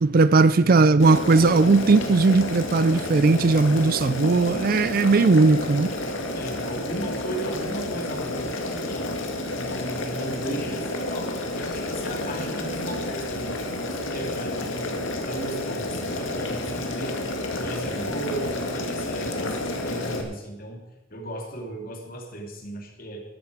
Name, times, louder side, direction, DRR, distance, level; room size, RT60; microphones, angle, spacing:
voice 1, 0.0-5.9, right 3 dB, 45° right, 0.4 m, -18 dB
Boiling, 1.0-20.2, left 1 dB, 80° left, 2.1 m, -30 dB
voice 2, 6.3-9.1 9.5-14.9 15.3-17.2 17.5-20.8 21.1-23.2, right 1 dB, 45° left, 2.7 m, -36 dB
13.5 x 13.0 x 5.1 m
head